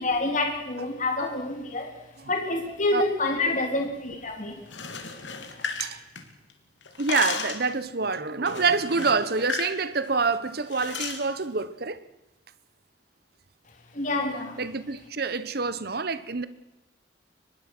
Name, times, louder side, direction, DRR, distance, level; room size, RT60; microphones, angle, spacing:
voice 1, 0.0-1.9 2.3-4.5 13.9-14.6, left 2 dB, 45° left, 3.3 m, -27 dB
sound 1, 4.6-6.5 6.8-7.7 8.5-9.8 10.0-10.2 10.7-11.2, left 5 dB, 80° left, 3.0 m, -34 dB
voice 2, 7.0-12.0 14.6-16.4, right 4 dB, 55° right, 1.1 m, -26 dB
24.0 x 21.0 x 6.2 m
head